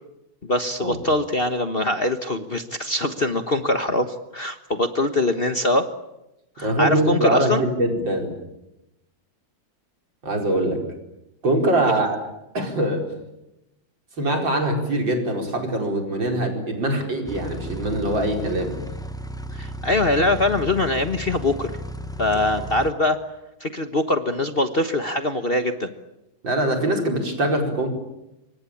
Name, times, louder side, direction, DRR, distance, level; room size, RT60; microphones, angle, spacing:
voice 1, 0.4-5.9 6.6-7.6 19.5-21.7 22.2-23.2 23.6-25.9, left 2 dB, 35° left, 8 dB, 1.3 m, -23 dB
voice 2, 6.6-8.3 10.2-10.8 11.4-12.2 12.5-13.1 14.2-18.8 26.4-27.9, right 1 dB, 70° right, 3 dB, 5.5 m, -23 dB
sound 1, 17.3-22.9, equal, ahead, 1.0 m, -34 dB
26.5 x 24.0 x 8.7 m, 0.91 s
omnidirectional pair, 2.1 m